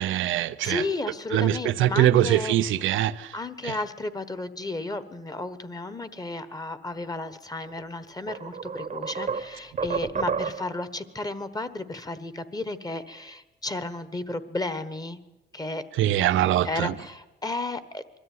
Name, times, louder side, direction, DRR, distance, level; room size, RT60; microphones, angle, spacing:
voice 1, 0.0-0.8 1.3-3.3 3.6-3.7 16.0-16.9, right 12 dB, 80° right, 0.6 m, -23 dB
voice 2, 0.6-2.6 3.3-15.2 15.5-15.8 16.3-18.2, left 2 dB, 20° left, 1.3 m, -33 dB
sound 1, 7.7-7.8 8.3-10.9, right 6 dB, 40° right, 1.0 m, -31 dB
22.0 x 13.5 x 9.5 m
cardioid pair, 90°, 20 cm